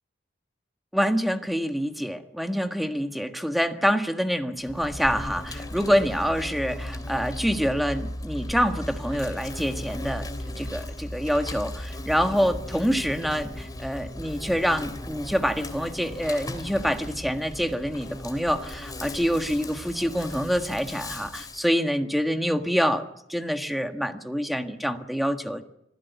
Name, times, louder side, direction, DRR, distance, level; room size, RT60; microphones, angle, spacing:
voice 1, 0.9-25.6, equal, ahead, 6 dB, 1.6 m, -26 dB
Insect, 4.6-21.7, left 1 dB, 20° left, 2.9 m, -37 dB
26.0 x 16.0 x 8.3 m, 0.78 s
head